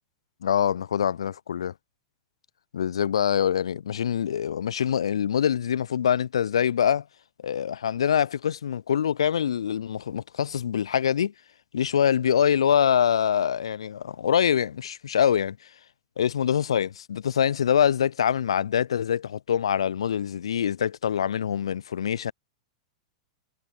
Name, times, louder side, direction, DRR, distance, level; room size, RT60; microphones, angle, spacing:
voice 1, 0.4-1.7 2.7-7.0 7.4-11.3 11.7-15.6 16.2-22.3, left 8 dB, 70° left, 0.5 m, -24 dB
figure-of-eight pair, 95°, 3 cm